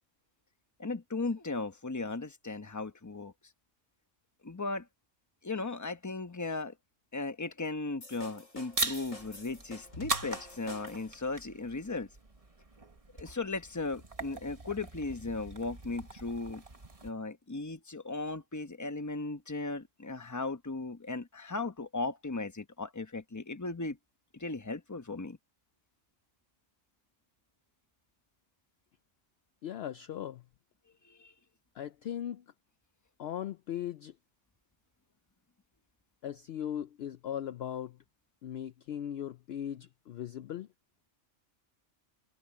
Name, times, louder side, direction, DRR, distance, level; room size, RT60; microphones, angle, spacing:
voice 1, 0.8-3.3 4.4-4.9 5.4-6.7 7.1-12.1 13.2-16.6 17.0-24.0 24.3-25.4 31.0-31.3, left 3 dB, 15° left, 0.9 m, -37 dB
sound 1, 8.0-11.2, left 1 dB, 85° left, 4.9 m, -48 dB
sound 2, 8.7-17.1, right 3 dB, 30° right, 1.5 m, -40 dB
voice 2, 29.6-30.4 31.8-32.4 33.2-34.1 36.2-38.0 38.4-40.7, left 10 dB, 65° left, 0.7 m, -38 dB
omnidirectional pair, 1.3 m